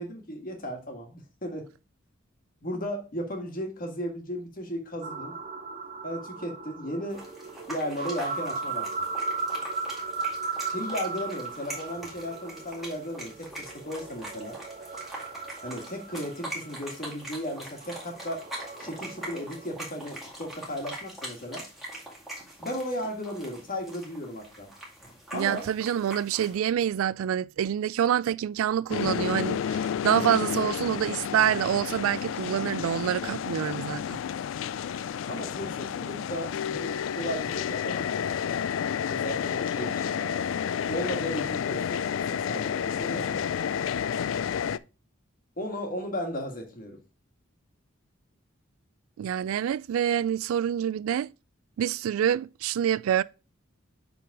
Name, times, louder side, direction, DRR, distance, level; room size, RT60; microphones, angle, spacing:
voice 1, 0.0-1.7 2.6-5.3 6.0-7.2 7.7-8.9 10.7-14.6 15.6-18.4 18.8-21.6 22.6-24.7 25.3-25.7 35.3-38.1 39.1-40.6 40.9-43.5 45.6-47.0, equal, 45° left, 1.7 m, -35 dB
sound 1, 5.0-19.7, right 4 dB, 35° right, 0.7 m, -37 dB
sound 2, 7.1-26.6, right 1 dB, ahead, 2.1 m, -43 dB
voice 2, 25.3-34.2 49.2-51.3 51.8-53.2, right 9 dB, 85° right, 0.3 m, -26 dB
sound 3, 28.9-44.8, left 8 dB, 70° left, 0.3 m, -30 dB
6.9 x 3.9 x 4.7 m
head